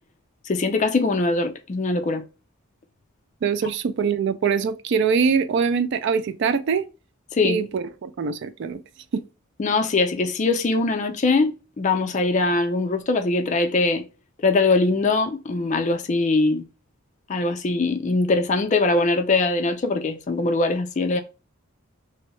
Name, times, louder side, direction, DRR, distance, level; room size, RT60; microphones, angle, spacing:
voice 1, 0.5-2.2 7.3-7.6 9.6-14.0 14.4-16.6 17.3-21.2, left 3 dB, 35° left, 0.4 m, -22 dB
voice 2, 3.4-6.9 7.4-8.8 9.1-9.2, right 6 dB, 55° right, 0.3 m, -23 dB
2.6 x 2.0 x 3.0 m
head